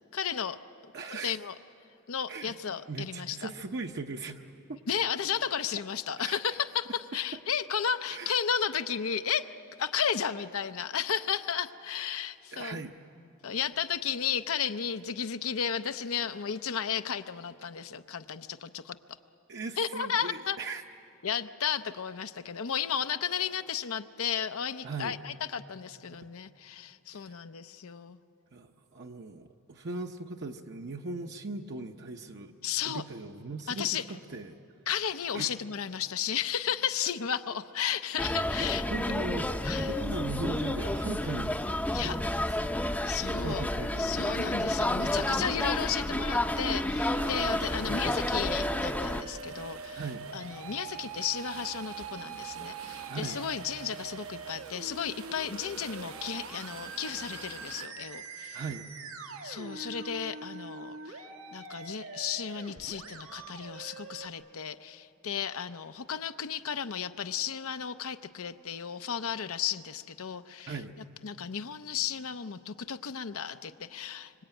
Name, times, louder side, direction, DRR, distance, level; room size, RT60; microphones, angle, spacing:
voice 1, 0.1-0.6 1.1-1.5 2.1-3.5 4.9-9.5 9.8-12.8 13.4-19.0 19.8-20.6 21.2-28.2 32.6-33.0 33.7-34.0 34.9-38.8 39.6-40.0 41.9-42.2 43.0-43.7 44.0-50.0 50.3-58.6 59.4-61.2 61.5-70.7 71.2-74.4, left 8 dB, 75° left, 10 dB, 0.6 m, -33 dB
voice 2, 0.9-1.4 2.3-2.5 2.9-4.8 6.2-6.4 8.1-8.3 12.5-12.9 19.5-20.8 24.8-25.2 27.1-27.4 28.5-32.5 32.8-34.6 35.3-35.5 38.6-41.5 43.2-44.2 50.0-50.2 53.1-53.4 58.5-58.9 70.7-70.9, right 3 dB, 50° right, 3 dB, 0.8 m, -39 dB
sound 1, 38.2-49.2, left 1 dB, 5° left, 0.6 m, -30 dB
Musical instrument, 46.3-64.3, right 5 dB, 90° right, 2.1 m, -44 dB
waves lake, 47.2-57.9, right 6 dB, 75° right, 1.0 m, -48 dB
25.5 x 24.5 x 8.9 m, 2.8 s
head